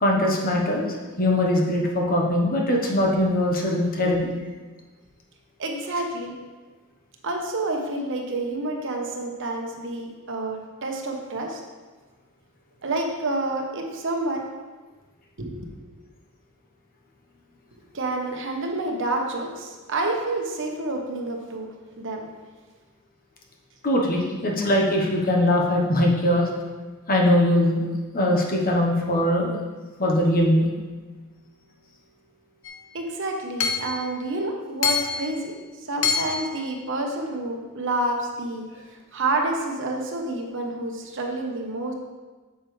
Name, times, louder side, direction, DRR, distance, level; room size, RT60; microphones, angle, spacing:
voice 1, 0.0-4.2 23.8-26.5 27.1-27.9 28.1-29.6 30.0-30.7, left 1 dB, 40° left, -1 dB, 1.1 m, -21 dB
voice 2, 5.6-6.3 7.2-11.6 12.8-14.5 15.4-15.9 17.9-22.3 32.9-35.5 35.9-38.6 39.1-41.9, right 2 dB, 60° right, 2 dB, 1.0 m, -29 dB
Hammer / Chink clink, 32.7-32.8 33.6-34.0 34.8-35.3 36.0-36.5, left 6 dB, 60° left, 0.7 m, -25 dB
8.6 x 6.9 x 3.3 m, 1.3 s
head